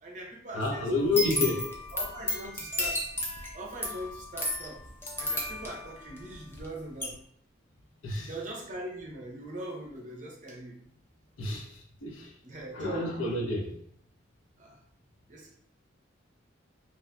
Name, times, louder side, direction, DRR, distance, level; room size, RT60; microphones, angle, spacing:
voice 1, 0.0-1.4 1.9-3.0 3.5-4.8 5.2-7.2 8.2-10.8 12.4-13.1 14.6-14.8 15.3-15.5, right 1 dB, 40° right, -1 dB, 0.6 m, -41 dB
voice 2, 0.5-1.7 8.0-8.3 11.4-12.3 12.7-13.7, left 3 dB, 80° left, -1 dB, 0.7 m, -29 dB
sound 1, 1.0-6.7 7.0-7.1, left 1 dB, 10° left, 0.3 m, -33 dB
2.8 x 2.6 x 2.2 m, 0.65 s
head